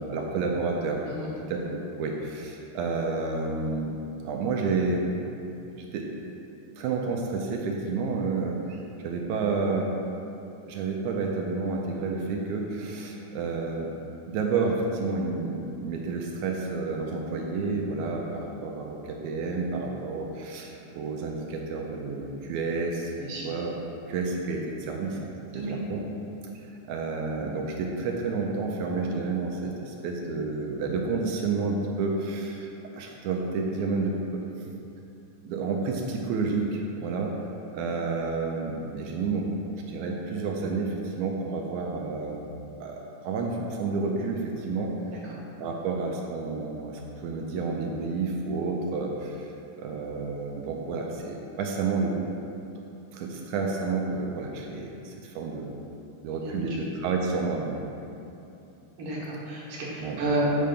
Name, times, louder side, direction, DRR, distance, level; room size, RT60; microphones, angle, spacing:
voice 1, 0.0-1.0 1.5-4.0 4.2-5.1 5.8-6.1 6.8-9.9 10.6-13.9 14.3-23.1 23.4-23.8 24.1-26.0 26.9-34.4 35.5-37.3 37.7-39.5 39.9-42.5 42.8-44.9 45.6-49.5 49.8-52.1 53.1-55.7 56.2-57.8 60.0-60.2, right 4 dB, 80° right, 0 dB, 1.9 m, -30 dB
voice 2, 23.2-23.5 25.5-25.7 45.1-45.4 59.0-60.4, right 2 dB, 55° right, -6 dB, 1.7 m, -32 dB
7.5 x 3.3 x 5.2 m, 2.8 s
omnidirectional pair, 3.5 m